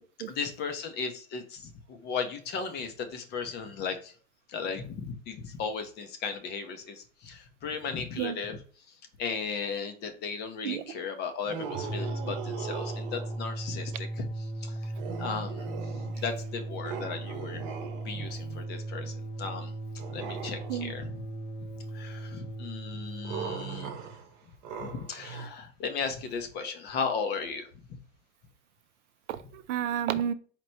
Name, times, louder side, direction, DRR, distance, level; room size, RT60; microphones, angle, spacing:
voice 1, 0.3-4.1 4.5-8.6 8.9-14.3 14.6-14.9 15.2-15.7 16.1-17.7 18.0-19.7 20.1-21.1 21.9-23.9 24.8-27.7, left 5 dB, 30° left, 7 dB, 0.5 m, -36 dB
sound 1, 11.4-13.5 15.0-16.4 16.8-18.5 20.0-21.1 23.2-25.5, right 7 dB, 45° right, 0.9 m, -40 dB
sound 2, 11.6-23.5, right 2 dB, 75° left, 1.2 m, -37 dB
voice 2, 18.1-18.6 19.0-19.1 20.7-20.9 29.3-30.3, right 10 dB, 75° right, 12 dB, 0.5 m, -32 dB
4.4 x 2.1 x 4.0 m, 0.42 s
hypercardioid pair, 125°, 37 cm